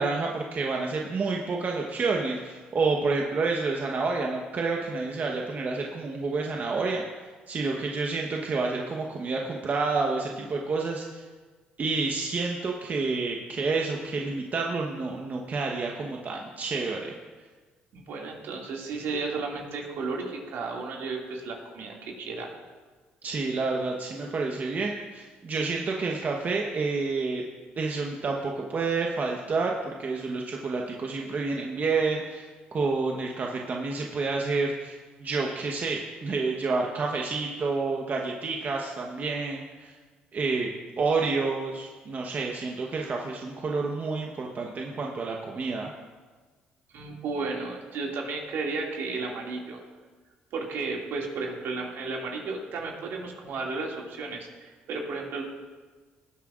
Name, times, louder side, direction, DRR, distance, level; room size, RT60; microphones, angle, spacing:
voice 1, 0.0-11.2 11.8-17.1 23.2-27.4 27.8-40.0 40.3-40.7 41.0-45.9, right 4 dB, 45° right, 0 dB, 1.0 m, -29 dB
voice 2, 17.9-22.5 46.9-49.8 50.5-55.4, right 3 dB, 70° right, -1 dB, 2.2 m, -33 dB
19.0 x 8.4 x 2.5 m, 1.4 s
supercardioid pair, 70°, 4 cm